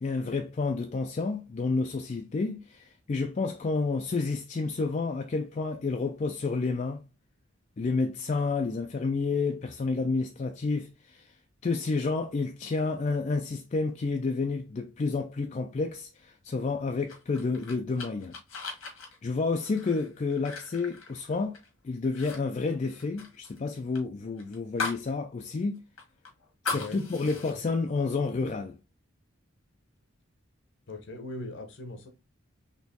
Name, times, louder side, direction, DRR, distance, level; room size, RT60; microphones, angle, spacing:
voice 1, 0.0-7.0 7.8-11.3 11.6-18.3 18.7-18.8 19.2-21.6 21.8-25.8 26.6-28.8, left 3 dB, 35° left, 0.4 m, -30 dB
sound 1, 17.1-21.7 22.0-22.4 22.6-25.1 25.4-25.5 26.0-27.5, left 4 dB, 85° left, 1.5 m, -38 dB
voice 2, 30.9-32.1, left 2 dB, 60° left, 0.9 m, -40 dB
4.3 x 3.0 x 2.8 m
head